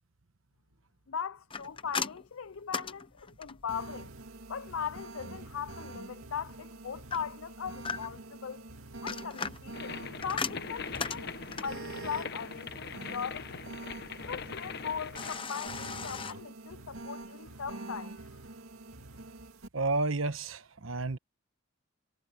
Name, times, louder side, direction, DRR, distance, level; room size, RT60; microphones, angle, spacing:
voice 1, 1.1-4.1 4.5-8.6 9.0-13.7 14.2-18.4, left 7 dB, 80° left, 0.6 m, -39 dB
sound 1, 1.5-3.8 7.1-8.3 8.9-11.8 15.1-16.3, left 5 dB, 25° left, 0.8 m, -38 dB
sound 2, 3.7-19.7, right 2 dB, 90° right, 2.4 m, -46 dB
sound 3, 9.7-15.4, left 5 dB, 50° left, 1.1 m, -41 dB
voice 2, 19.7-21.2, right 3 dB, 75° right, 1.2 m, -31 dB
head